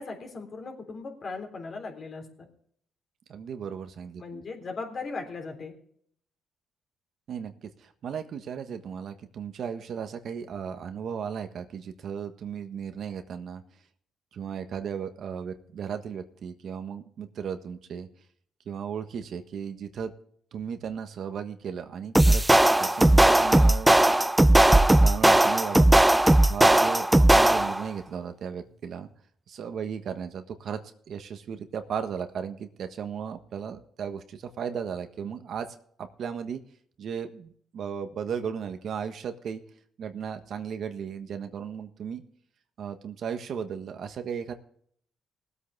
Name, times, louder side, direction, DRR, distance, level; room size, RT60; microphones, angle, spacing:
voice 1, 0.0-2.5 4.2-5.7, left 4 dB, 45° left, 2 dB, 3.6 m, -38 dB
voice 2, 3.3-4.4 7.3-13.6 14.3-18.1 18.7-20.1 20.5-22.5 22.8-23.9 24.9-29.1 29.5-30.8 31.1-36.6 37.0-39.6 40.0-42.2 42.8-44.5, right 7 dB, 65° right, 8 dB, 1.4 m, -36 dB
sound 1, 22.1-27.9, right 1 dB, 10° right, 0.4 m, -18 dB
19.5 x 8.4 x 3.6 m, 0.63 s
cardioid pair, 90°, 0 cm